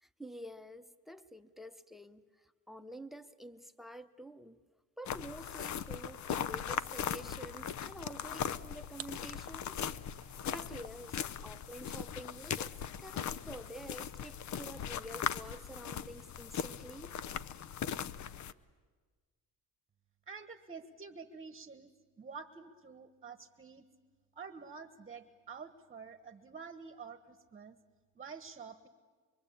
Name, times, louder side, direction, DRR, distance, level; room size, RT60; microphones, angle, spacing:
voice 1, 0.0-4.6 5.0-9.8 10.5-12.7 13.0-17.2, right 1 dB, ahead, 0.9 m, -49 dB
sound 1, 5.0-18.5, left 9 dB, 60° left, 0.8 m, -39 dB
sound 2, 5.9-11.4, right 10 dB, 45° right, 0.8 m, -56 dB
voice 2, 20.3-21.9 22.2-23.8 24.3-27.8 28.1-28.9, right 5 dB, 25° right, 1.3 m, -48 dB
24.5 x 24.0 x 8.6 m
cardioid pair, 105°, 33 cm